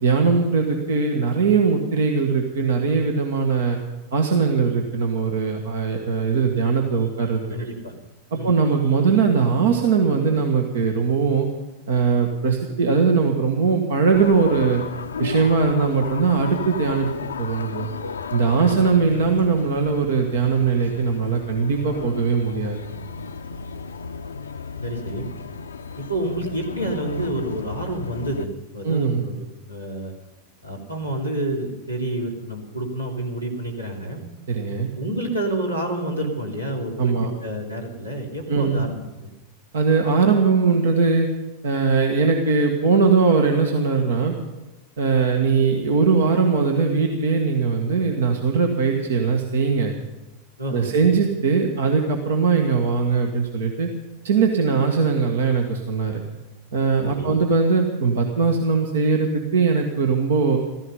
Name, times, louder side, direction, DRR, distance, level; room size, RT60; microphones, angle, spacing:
voice 1, 0.0-3.8 4.1-7.7 8.3-11.5 11.9-14.8 15.2-17.1 17.4-17.9 18.3-22.8 28.8-29.2 34.5-34.9 37.0-37.3 38.5-38.8 39.7-41.3 41.6-44.3 45.0-49.9 50.7-53.9 54.2-56.2 56.7-60.6, right 5 dB, 60° right, 2 dB, 1.7 m, -20 dB
voice 2, 7.5-7.9 8.3-8.5 18.6-18.8 24.8-25.3 26.0-29.3 29.7-30.1 30.6-34.2 34.9-37.1 37.4-39.3 50.6-50.9 57.0-57.4, right 1 dB, 90° right, -1 dB, 3.0 m, -29 dB
sound 1, 14.1-28.5, left 5 dB, 70° left, 0.7 m, -34 dB
15.5 x 15.0 x 5.6 m, 1.1 s
figure-of-eight pair, 90°, 0 cm